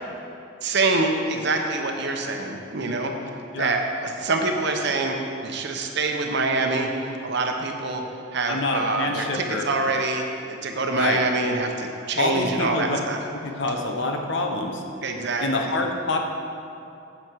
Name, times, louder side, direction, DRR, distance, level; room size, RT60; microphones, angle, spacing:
voice 1, 0.6-3.1 3.6-8.0 8.3-13.2 15.0-15.5, right 3 dB, 55° right, 3 dB, 0.9 m, -25 dB
voice 2, 8.5-9.7 10.9-11.2 12.2-13.0 13.3-14.8 15.4-16.2, left 2 dB, 60° left, 3 dB, 0.9 m, -26 dB
10.5 x 7.1 x 4.7 m, 2.7 s
head